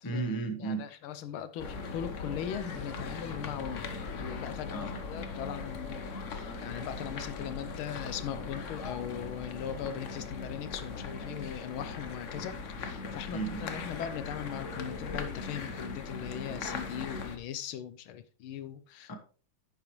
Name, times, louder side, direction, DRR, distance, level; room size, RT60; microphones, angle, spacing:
voice 1, 0.0-0.8 4.7-5.0 13.3-13.6 19.1-19.2, right 3 dB, 15° left, 0.7 m, -34 dB
voice 2, 0.6-19.1, left 9 dB, 75° left, 1.5 m, -39 dB
sound 1, 1.6-17.4, left 4 dB, 50° left, 0.9 m, -39 dB
10.5 x 6.8 x 3.1 m
omnidirectional pair, 2.4 m